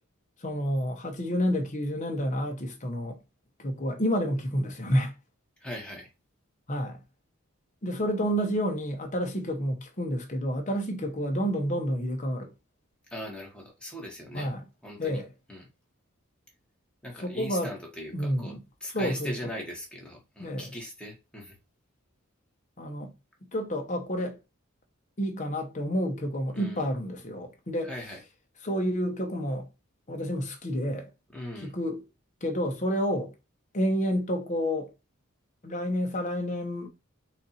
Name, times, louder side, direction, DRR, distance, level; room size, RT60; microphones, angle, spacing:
voice 1, 0.4-3.2 3.6-5.1 6.7-7.0 7.8-12.5 14.3-14.6 15.0-15.3 17.2-17.7 18.1-18.6 18.9-19.3 20.4-20.7 22.8-23.1 23.5-24.4 25.2-27.9 28.6-29.7 30.1-31.1 31.6-32.0 32.4-33.3 33.7-34.9 35.6-36.9, equal, 35° left, 1.0 m, -29 dB
voice 2, 5.6-6.1 13.1-14.5 14.8-15.2 15.5-15.7 17.0-18.5 18.8-21.6 26.5-26.8 27.8-28.2 31.3-31.7, left 1 dB, 5° left, 1.4 m, -39 dB
4.3 x 2.7 x 4.1 m
head